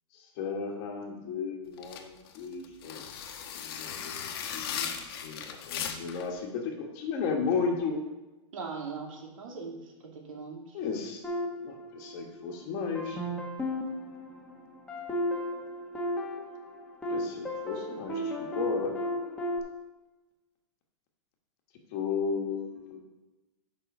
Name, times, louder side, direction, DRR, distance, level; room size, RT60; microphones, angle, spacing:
voice 1, 0.4-3.0 3.6-8.0 10.7-11.2 11.6-13.2 17.1-18.9 21.9-23.0, left 5 dB, 30° left, 1 dB, 1.4 m, -34 dB
sound 1, 1.8-6.3, left 8 dB, 45° left, 1.1 m, -37 dB
voice 2, 8.5-10.8, right 4 dB, 85° right, 0 dB, 2.6 m, -40 dB
sound 2, 11.2-12.5 12.9-19.6, left 1 dB, 5° left, 1.1 m, -34 dB
9.8 x 5.6 x 5.3 m, 1.1 s
supercardioid pair, 175°, 17 cm